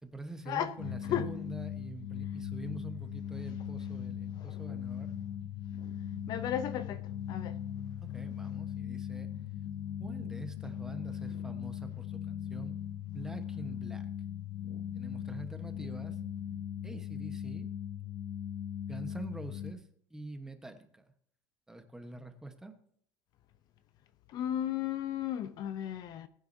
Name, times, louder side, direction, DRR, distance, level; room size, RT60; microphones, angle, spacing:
voice 1, 0.0-5.2 8.0-9.3 10.0-12.8 13.1-14.1 14.9-16.2 16.8-17.7 18.9-19.8 20.1-21.0 21.7-22.7, right 2 dB, 5° right, 1.1 m, -45 dB
sound 1, 0.8-19.7, left 9 dB, 85° left, 1.2 m, -39 dB
voice 2, 6.3-7.0 7.3-7.5 24.3-26.3, left 10 dB, 45° left, 0.6 m, -34 dB
20.0 x 9.3 x 2.7 m
cardioid pair, 155°, 10 cm